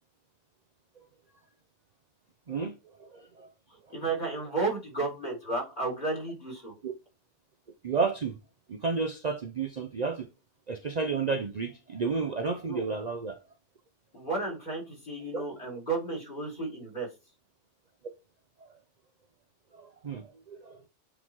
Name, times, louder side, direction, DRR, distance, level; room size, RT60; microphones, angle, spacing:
voice 1, 2.5-3.5 3.9-4.0 6.8-6.9 7.8-8.4 8.7-10.3 10.7-13.4 15.3-15.4 15.7-15.8 18.6-18.7 19.7-20.8, right 4 dB, 45° right, 0.7 m, -32 dB
voice 2, 3.7-6.7 12.7-12.8 14.1-17.1, right 3 dB, 40° left, 3.9 m, -33 dB
8.5 x 4.0 x 4.6 m
omnidirectional pair, 1.2 m